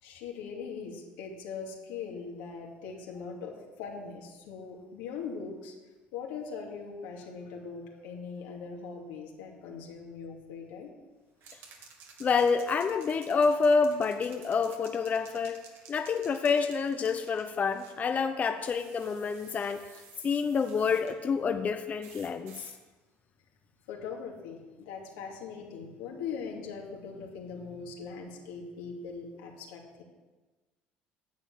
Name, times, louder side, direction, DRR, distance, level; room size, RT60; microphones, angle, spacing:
voice 1, 0.0-5.7 6.1-10.9 23.9-30.0, left 5 dB, 90° left, -1 dB, 2.5 m, -41 dB
sound 1, 11.4-18.0 18.6-21.1 22.0-22.8, right 5 dB, 65° right, 2.1 m, -54 dB
voice 2, 12.2-15.6 15.9-19.8 20.2-22.7, left 5 dB, 35° left, 6 dB, 0.7 m, -28 dB
10.5 x 7.4 x 7.4 m, 1.2 s
supercardioid pair, 95°, 4 cm